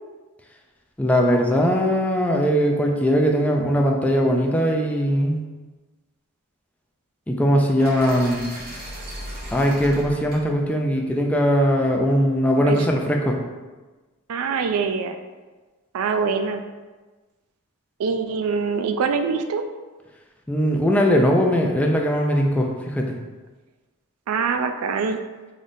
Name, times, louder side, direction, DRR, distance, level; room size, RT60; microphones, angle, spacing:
voice 1, 1.0-5.4 7.3-8.5 9.5-13.4 20.5-23.1, equal, 5° left, 0 dB, 0.4 m, -20 dB
sound 1, 7.8-11.8, equal, 45° right, 0.9 m, -37 dB
voice 2, 14.3-15.2 15.9-16.6 18.0-19.7 24.3-25.2, right 5 dB, 75° right, 7 dB, 0.3 m, -24 dB
3.8 x 3.4 x 2.6 m, 1.3 s
head